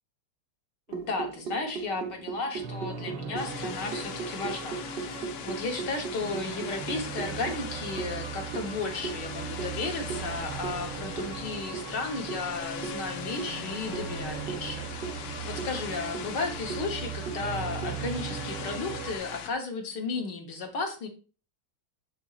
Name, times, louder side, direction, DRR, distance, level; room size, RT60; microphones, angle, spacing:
voice 1, 0.9-21.1, left 3 dB, 65° left, 4 dB, 1.7 m, -34 dB
sound 1, 0.9-17.9, right 6 dB, 55° right, 0.7 m, -39 dB
sound 2, 2.6-19.2, right 6 dB, 75° right, 1.3 m, -39 dB
sound 3, 3.4-19.5, left 9 dB, 90° left, 1.4 m, -41 dB
7.1 x 6.2 x 2.4 m, 0.36 s
omnidirectional pair, 2.1 m